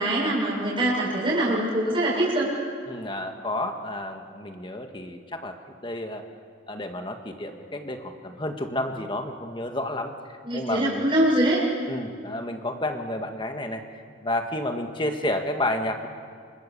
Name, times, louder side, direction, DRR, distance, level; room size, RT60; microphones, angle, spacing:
voice 1, 0.0-2.5 10.4-11.6, right 1 dB, 25° right, -5 dB, 7.4 m, -23 dB
voice 2, 2.9-5.6 5.8-6.2 6.7-10.1 10.5-11.1 11.9-16.1, left 1 dB, 25° left, 5 dB, 1.9 m, -31 dB
28.0 x 25.0 x 7.0 m, 2.1 s
head